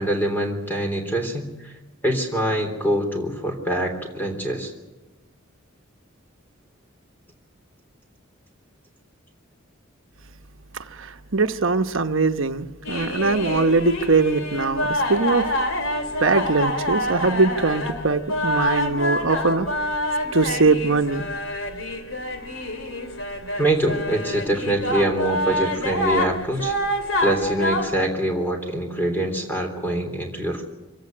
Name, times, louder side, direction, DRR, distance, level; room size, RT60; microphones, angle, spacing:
voice 1, 0.0-1.7 2.0-4.7 23.6-26.7 27.2-30.6, right 1 dB, 10° left, 3 dB, 3.4 m, -24 dB
voice 2, 10.9-15.5 16.2-19.7 20.3-21.3, right 3 dB, 65° right, 8 dB, 1.1 m, -21 dB
sound 1, 12.8-28.0, left 1 dB, 70° left, 3.1 m, -27 dB
25.0 x 17.0 x 9.0 m, 1.1 s
head